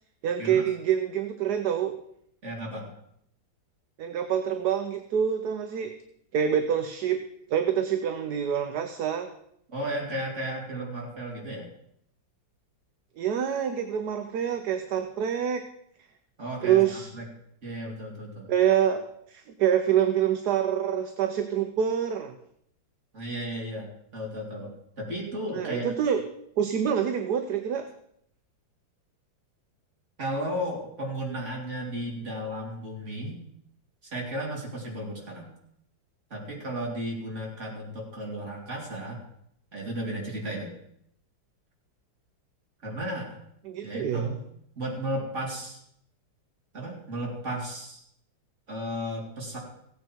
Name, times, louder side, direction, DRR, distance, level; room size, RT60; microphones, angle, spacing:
voice 1, 0.2-2.0 4.0-5.9 6.3-7.2 7.5-9.3 13.2-15.7 16.6-17.1 18.5-22.3 25.5-26.2 26.6-27.9 43.7-44.4, right 9 dB, 65° right, 7 dB, 1.3 m, -26 dB
voice 2, 2.4-2.9 9.7-11.7 16.4-17.2 17.6-18.5 23.1-23.9 24.1-24.7 25.0-25.9 30.2-33.4 34.0-35.5 36.3-39.2 39.7-40.7 42.8-43.4 43.8-44.4 44.8-45.8 46.7-48.0 48.7-49.6, right 1 dB, 35° right, -2 dB, 3.3 m, -34 dB
16.0 x 9.2 x 4.5 m, 0.71 s
omnidirectional pair, 2.0 m